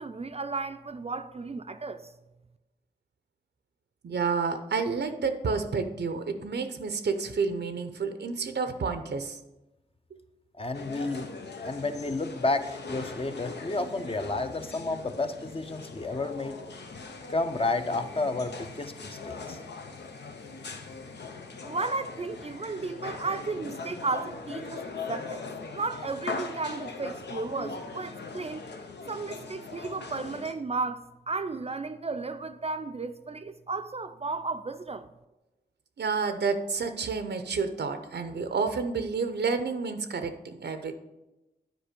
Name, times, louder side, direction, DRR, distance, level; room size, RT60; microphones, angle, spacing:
voice 1, 0.0-2.1 21.6-25.5 25.7-28.7 29.1-35.1, right 3 dB, 35° right, 0.4 m, -34 dB
voice 2, 4.0-9.4 36.0-41.0, right 5 dB, 90° right, 0.7 m, -30 dB
voice 3, 10.6-11.3 11.6-16.6 17.3-19.6, left 2 dB, 35° left, 0.6 m, -31 dB
sound 1, 10.7-30.5, left 4 dB, 90° left, 0.8 m, -40 dB
9.1 x 4.8 x 5.2 m
wide cardioid pair, 80°, 17 cm